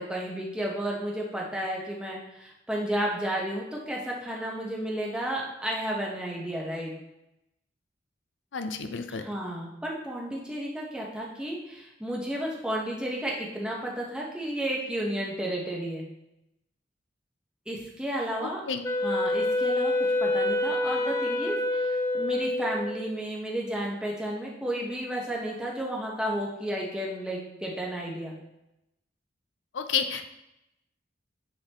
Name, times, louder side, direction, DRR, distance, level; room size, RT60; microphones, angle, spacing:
voice 1, 0.0-6.9 9.2-16.0 17.7-18.6 19.0-19.9 20.2-28.3, right 1 dB, 5° right, -3 dB, 1.1 m, -32 dB
voice 2, 8.5-9.3 18.4-18.8 29.7-30.3, left 6 dB, 90° left, 8 dB, 0.5 m, -31 dB
Wind instrument woodwind instrument, 18.8-23.2, left 2 dB, 15° left, 0.4 m, -27 dB
9.8 x 4.1 x 3.0 m, 0.88 s
head